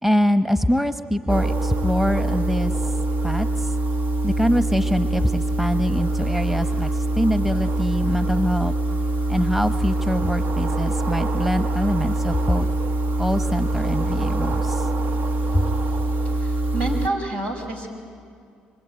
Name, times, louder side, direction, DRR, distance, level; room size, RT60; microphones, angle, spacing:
voice 1, 0.0-2.7 3.2-3.7 4.2-8.7 9.3-12.7 13.2-14.9 15.5-15.7, equal, 5° right, 9 dB, 1.1 m, -24 dB
sound 1, 1.3-17.1, right 2 dB, 65° right, 1.2 m, -24 dB
voice 2, 16.3-17.9, right 2 dB, 80° right, 2 dB, 5.6 m, -28 dB
25.0 x 24.5 x 9.1 m, 2.3 s
supercardioid pair, 70°, 3 cm